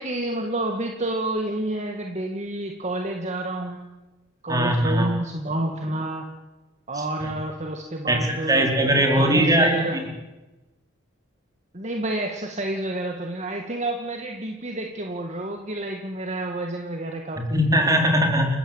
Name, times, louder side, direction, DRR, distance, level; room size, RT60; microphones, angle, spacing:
voice 1, 0.0-3.8 4.4-6.3 6.9-8.7 9.1-10.0 11.7-17.7, right 1 dB, 35° right, 3 dB, 2.2 m, -29 dB
voice 2, 4.5-5.1 6.9-7.3 8.1-10.0 17.5-18.6, equal, 20° right, 2 dB, 4.6 m, -21 dB
30.0 x 14.5 x 9.1 m, 1.1 s
head